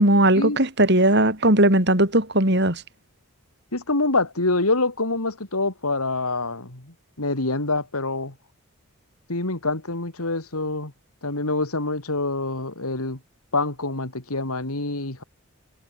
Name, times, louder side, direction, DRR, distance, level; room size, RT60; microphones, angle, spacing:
voice 1, 0.0-2.8, right 1 dB, 50° right, 5.1 m, -18 dB
voice 2, 3.7-8.3 9.3-10.9 11.2-13.2 13.5-15.2, left 2 dB, 85° left, 3.5 m, -26 dB
head